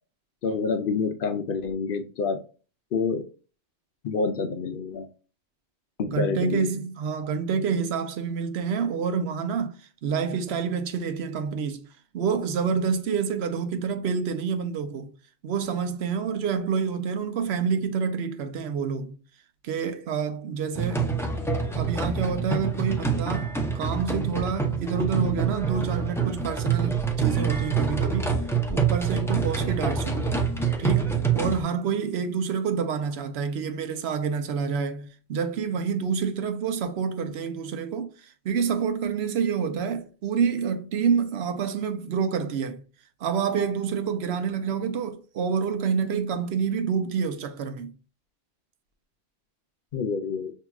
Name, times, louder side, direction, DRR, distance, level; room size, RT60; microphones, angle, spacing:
voice 1, 0.4-2.4 2.9-3.2 4.0-5.1 6.0-6.7 49.9-50.5, left 5 dB, 60° left, 0.7 m, -27 dB
voice 2, 6.0-11.9 12.1-15.1 15.4-19.2 19.6-21.1 21.7-28.3 28.7-30.3 30.8-42.8 43.2-47.9, right 6 dB, 75° right, 0.8 m, -28 dB
sound 1, 20.7-31.6, right 6 dB, 5° left, 0.4 m, -26 dB
5.7 x 2.8 x 2.3 m
omnidirectional pair, 1.1 m